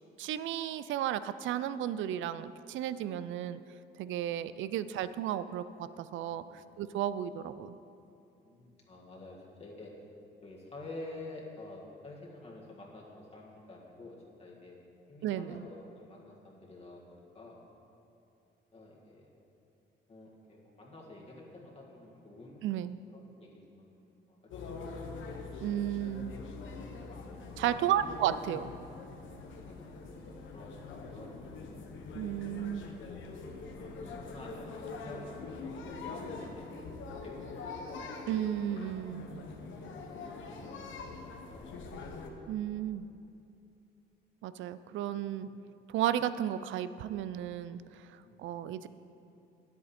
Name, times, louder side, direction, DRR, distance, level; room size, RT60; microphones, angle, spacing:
voice 1, 0.2-3.6 4.0-6.4 6.8-7.7 15.2-15.6 22.6-23.0 25.6-26.3 27.6-28.7 32.1-32.9 38.3-39.3 42.5-43.1 44.4-45.5 45.9-48.1 48.4-48.9, right 11 dB, 75° right, 14 dB, 0.4 m, -33 dB
voice 2, 8.4-9.9 10.4-14.8 15.1-17.6 18.7-19.3 20.1-25.0 26.6-28.2 29.6-31.4 32.8-33.2 33.7-38.1 39.9-41.8 44.7-45.2 48.2-48.5, left 2 dB, 30° left, -4 dB, 1.7 m, -50 dB
sound 1, 24.5-42.3, left 4 dB, 75° left, 1.0 m, -44 dB
9.5 x 8.3 x 4.3 m, 2.7 s
cardioid pair, 90°, 20 cm